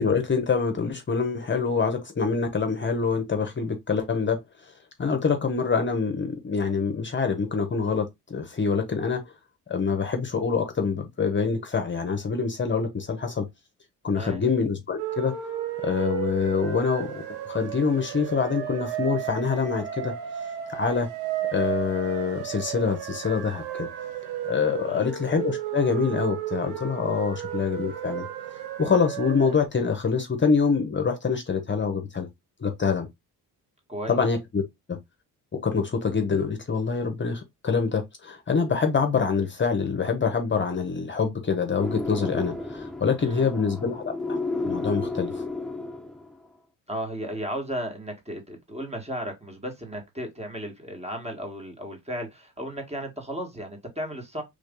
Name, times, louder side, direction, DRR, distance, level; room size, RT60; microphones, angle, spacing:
voice 1, 0.0-4.4 5.0-9.2 9.7-13.5 14.0-15.3 15.8-20.1 20.7-21.1 21.5-23.9 24.5-28.2 28.8-32.3 32.6-33.1 34.1-34.6 34.9-35.0 35.6-44.4 44.6-45.4, left 5 dB, 30° left, 0.9 m, -25 dB
sound 1, 15.0-29.7, right 11 dB, 85° right, 0.9 m, -33 dB
voice 2, 24.7-25.1 27.1-27.3 33.9-34.2 43.2-43.5 46.9-54.4, equal, 15° right, 1.6 m, -35 dB
sound 2, 41.8-46.4, left 2 dB, ahead, 0.6 m, -32 dB
3.3 x 2.6 x 3.7 m
supercardioid pair, 65°, 38 cm